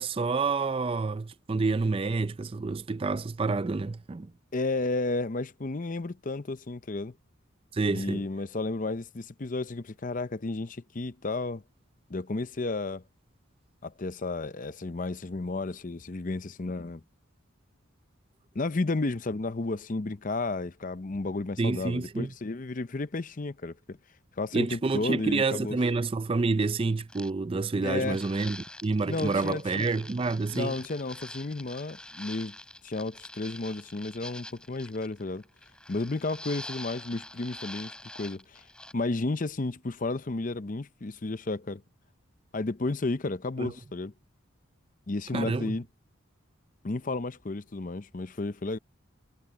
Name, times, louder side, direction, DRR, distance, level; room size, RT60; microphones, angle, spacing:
voice 1, 0.0-4.3 7.7-8.2 21.6-22.3 24.5-30.7 43.6-43.7 45.3-45.8, right 3 dB, 25° right, 0.4 m, -28 dB
voice 2, 4.5-7.1 7.9-11.6 12.1-13.0 13.8-17.0 18.5-24.0 24.4-25.8 27.8-28.2 29.1-29.9 30.5-32.6 32.8-35.4 35.9-38.6 38.9-41.8 42.5-44.1 45.1-45.9 46.8-48.8, left 2 dB, 40° left, 0.6 m, -32 dB
sound 1, 27.1-27.3 28.0-38.9, left 1 dB, 5° left, 3.4 m, -45 dB
head